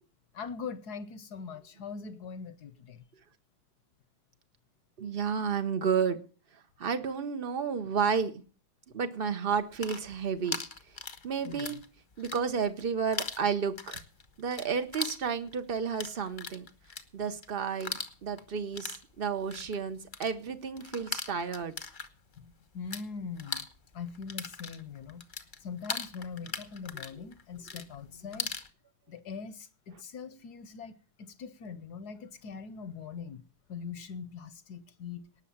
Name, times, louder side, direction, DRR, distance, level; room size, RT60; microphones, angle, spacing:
voice 1, 0.3-3.0 11.4-11.8 22.4-23.7 23.9-25.3 25.6-28.6 29.1-33.4 33.7-35.3, left 5 dB, 60° left, 1.1 m, -42 dB
voice 2, 5.0-6.2 6.8-8.3 8.9-10.6 11.2-11.8 12.2-14.0 14.4-16.7 17.1-21.7, right 6 dB, 70° right, 0.5 m, -31 dB
sound 1, 9.6-11.9 12.1-12.8 13.1-23.0 23.3-28.7, left 4 dB, 35° left, 0.8 m, -39 dB
18.5 x 6.5 x 7.1 m
omnidirectional pair, 2.3 m